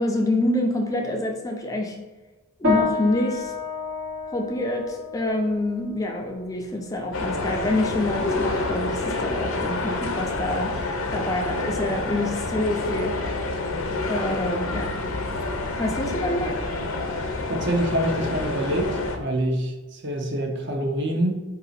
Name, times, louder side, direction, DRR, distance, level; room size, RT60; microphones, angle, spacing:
voice 1, 0.0-2.0 2.6-3.5 4.3-10.8 11.1-13.2 14.1-15.0 15.8-16.6, left 1 dB, 15° left, 2 dB, 0.4 m, -26 dB
sound 1, 2.6-12.3, left 3 dB, 75° right, 1.3 m, -32 dB
sound 2, 7.1-19.2, left 2 dB, 80° left, 0.7 m, -28 dB
voice 2, 17.5-21.4, right 1 dB, 55° right, 2 dB, 0.7 m, -26 dB
4.8 x 2.8 x 4.0 m, 1.2 s
head